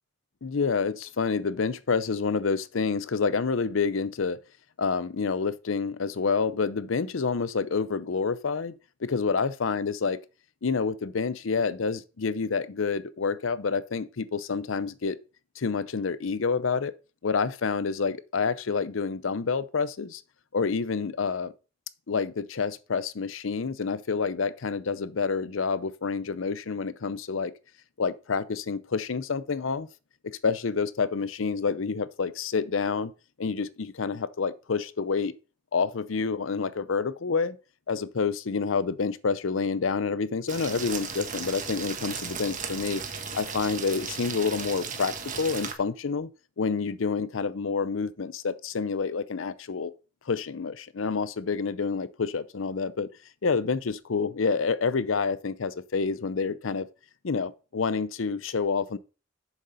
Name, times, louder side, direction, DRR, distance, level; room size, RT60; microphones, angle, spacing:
voice 1, 0.4-4.4 4.8-8.7 9.0-10.2 10.6-15.2 15.6-16.9 17.2-20.2 20.5-21.5 22.1-27.5 28.0-29.9 30.2-33.1 33.4-35.3 35.7-37.6 37.9-43.0 43.3-46.3 46.6-49.9 50.3-53.1 53.4-56.9 57.2-59.0, left 5 dB, 85° left, 0.6 m, -28 dB
sound 1, 40.5-45.7, right 6 dB, 40° right, 1.3 m, -36 dB
7.2 x 6.7 x 5.2 m
head